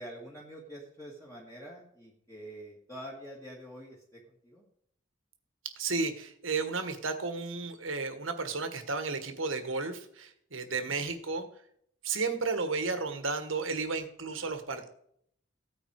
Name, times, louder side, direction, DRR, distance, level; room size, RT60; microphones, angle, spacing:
voice 1, 0.0-4.6, equal, 15° left, -5 dB, 2.1 m, -46 dB
voice 2, 5.8-11.4 12.0-14.9, right 4 dB, 85° right, 8 dB, 1.7 m, -33 dB
15.5 x 9.1 x 4.9 m, 0.71 s
head